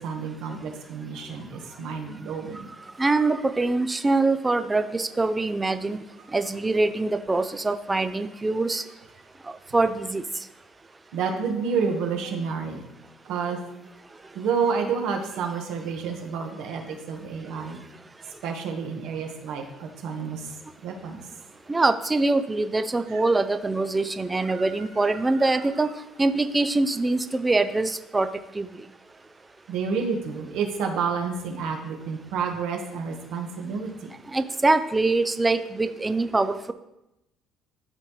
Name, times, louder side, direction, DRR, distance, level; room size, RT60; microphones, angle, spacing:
voice 1, 0.0-2.7 11.1-12.9 13.2-13.7 14.2-17.8 18.4-20.5 20.8-21.3 23.1-23.2 24.4-25.7 29.7-34.1, right 5 dB, 65° right, 3 dB, 1.2 m, -30 dB
voice 2, 3.0-6.0 6.3-8.8 9.4-10.3 21.7-25.9 26.2-28.3 28.5-28.9 34.3-36.7, right 2 dB, 10° right, 10 dB, 0.3 m, -24 dB
12.0 x 4.1 x 3.1 m, 0.88 s
cardioid pair, 170°, 0 cm